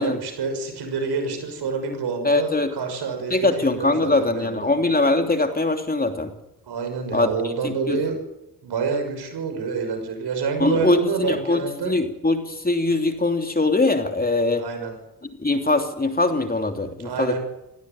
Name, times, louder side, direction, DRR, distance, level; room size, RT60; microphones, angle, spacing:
voice 1, 0.0-4.7 6.6-8.2 8.6-11.9 14.6-14.9 17.0-17.4, right 5 dB, 75° right, 5 dB, 6.4 m, -27 dB
voice 2, 2.2-2.7 3.3-6.3 7.1-7.3 7.6-8.0 10.6-14.6 15.4-17.3, left 2 dB, 20° left, 5 dB, 3.1 m, -22 dB
18.0 x 16.5 x 9.1 m, 0.86 s
supercardioid pair, 60°, 40 cm